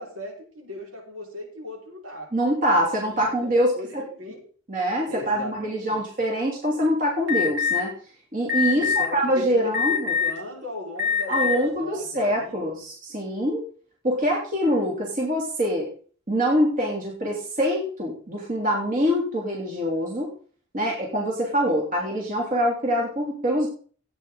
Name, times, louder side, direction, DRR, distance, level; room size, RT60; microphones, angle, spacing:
voice 1, 0.0-2.3 3.1-4.4 5.1-6.1 8.7-12.6, left 2 dB, 80° right, -2 dB, 5.6 m, -38 dB
voice 2, 2.3-4.1 4.7-7.9 8.3-10.1 11.3-13.6 14.0-15.9 16.3-20.3 20.7-23.7, equal, 40° right, -2 dB, 3.3 m, -24 dB
Alarm, 7.3-7.8 8.5-9.0 9.7-10.4 10.9-11.5, left 6 dB, 60° right, 3.9 m, -23 dB
16.0 x 9.3 x 4.1 m, 0.43 s
head